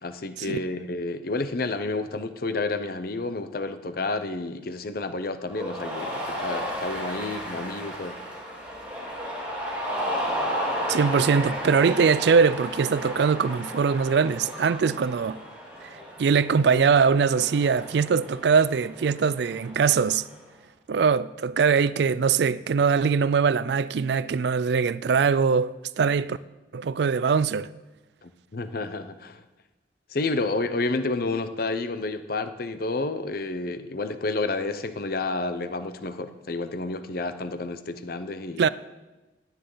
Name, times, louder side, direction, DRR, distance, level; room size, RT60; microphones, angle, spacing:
voice 1, 0.0-8.1 28.2-29.4 30.1-38.7, left 3 dB, 55° left, 0.7 m, -30 dB
Cheering, 5.5-20.3, equal, 10° right, 4.4 m, -34 dB
voice 2, 10.9-15.4 16.2-20.2 20.9-26.4 26.7-27.7 38.6-38.7, right 5 dB, 65° right, 0.4 m, -22 dB
16.0 x 9.9 x 3.9 m
head